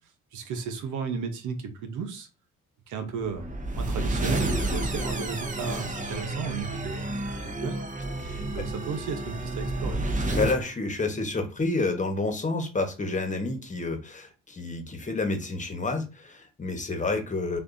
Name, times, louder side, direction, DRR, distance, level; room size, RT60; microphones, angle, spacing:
voice 1, 0.3-2.3 2.9-3.5 3.8-7.1 7.4-7.8 8.4-10.0, right 5 dB, 80° right, 7 dB, 0.9 m, -34 dB
sound 1, 3.2-10.6, right 2 dB, 25° right, 0.9 m, -30 dB
voice 2, 8.2-8.6 10.3-17.6, left 3 dB, 25° left, 5 dB, 1.2 m, -29 dB
6.5 x 2.6 x 2.6 m, 0.30 s
cardioid pair, 90°, 30 cm